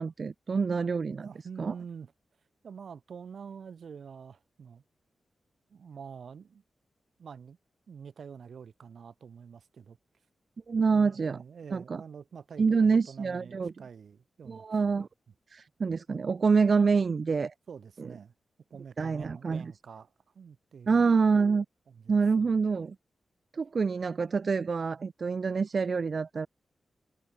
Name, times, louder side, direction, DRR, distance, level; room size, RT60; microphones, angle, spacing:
voice 1, 0.0-1.3 1.6-1.7 10.7-11.4 11.7-12.0 12.6-13.7 14.5-15.1 15.5-17.5 18.0-18.1 19.0-19.7 20.9-21.7 22.1-23.0 23.5-26.5, right 5 dB, 45° right, 0.6 m, -26 dB
voice 2, 1.2-2.1 2.6-4.8 5.7-6.6 7.2-7.6 7.9-10.0 10.9-14.7 17.7-18.3 18.7-21.0 21.9-22.6, right 6 dB, 70° right, 4.6 m, -46 dB
wide cardioid pair, 135°, 0 cm